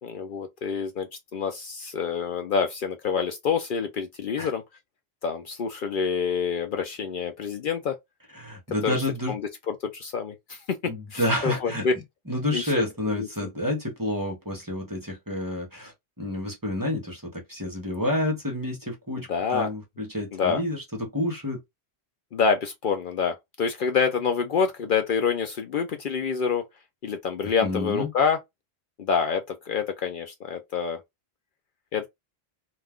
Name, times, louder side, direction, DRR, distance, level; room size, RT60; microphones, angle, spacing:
voice 1, 0.0-4.6 5.2-8.0 8.8-9.0 9.3-9.4 9.7-11.9 12.5-12.8 13.1-13.5 19.2-19.7 20.3-20.6 22.3-26.6 27.0-28.4 29.0-31.0 31.9-32.1, left 6 dB, 60° left, 0.6 m, -27 dB
voice 2, 8.3-9.3 10.9-11.9 12.3-21.6 27.6-28.1, left 1 dB, 20° right, 0.8 m, -29 dB
2.4 x 2.3 x 3.5 m
omnidirectional pair, 1.1 m